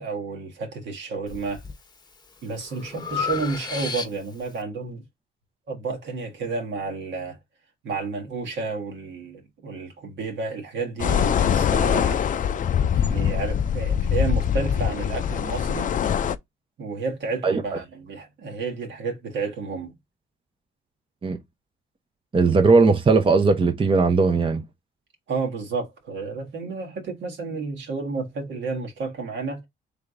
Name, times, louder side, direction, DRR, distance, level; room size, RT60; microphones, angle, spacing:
voice 1, 0.0-1.6 2.4-5.0 5.7-7.4 7.8-12.2 12.9-15.9 16.8-19.9 25.3-29.6, right 4 dB, 65° right, 1.6 m, -31 dB
Breathing, 1.3-1.8 2.2-4.5, left 5 dB, 20° left, 0.9 m, -32 dB
sound 1, 11.0-16.4, left 8 dB, 40° left, 0.4 m, -23 dB
voice 2, 22.3-24.6, right 4 dB, 25° right, 0.8 m, -18 dB
3.7 x 3.4 x 3.7 m
cardioid pair, 90°, 20 cm